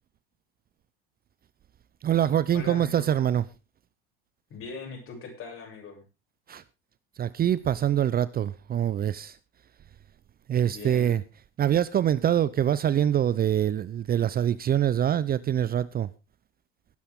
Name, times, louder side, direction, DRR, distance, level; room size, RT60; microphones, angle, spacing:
voice 1, 2.0-3.4 6.5-6.6 7.2-9.4 10.5-11.2 11.6-16.1, right 10 dB, 30° right, 0.7 m, -24 dB
voice 2, 2.5-3.2 4.5-6.0 10.6-11.2, left 4 dB, 45° left, 7.5 m, -40 dB
18.0 x 10.0 x 3.7 m
hypercardioid pair, 85°, 30 cm